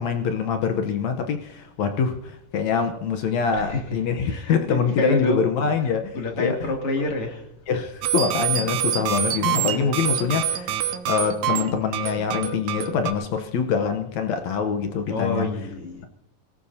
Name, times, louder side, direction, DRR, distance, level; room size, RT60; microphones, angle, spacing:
voice 1, 0.0-6.7 7.7-10.8 11.1-15.5, left 6 dB, 70° left, 2.0 m, -25 dB
voice 2, 3.5-7.4 9.7-9.9 15.1-16.1, left 2 dB, 40° left, 3.3 m, -28 dB
sound 1, 8.0-13.1, right 10 dB, 70° right, 2.3 m, -26 dB
25.5 x 17.0 x 2.8 m
omnidirectional pair, 3.9 m